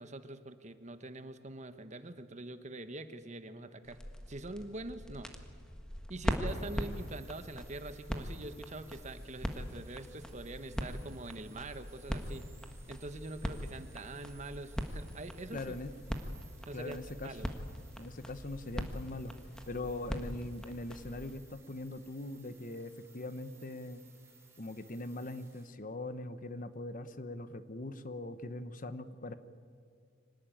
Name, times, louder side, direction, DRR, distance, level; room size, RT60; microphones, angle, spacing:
voice 1, 0.0-4.0 4.3-5.3 6.1-12.5 12.9-15.8 16.7-17.0 17.2-17.5, right 2 dB, 35° right, 10 dB, 1.2 m, -44 dB
sound 1, 3.8-21.4, equal, 5° left, 1.6 m, -41 dB
sound 2, 6.5-25.7, right 5 dB, 15° right, 4.6 m, -62 dB
voice 2, 15.5-15.9 16.7-17.3 18.0-19.3 19.7-24.0 24.6-29.3, left 2 dB, 45° left, 12 dB, 1.0 m, -41 dB
25.5 x 18.5 x 9.2 m, 2.2 s
head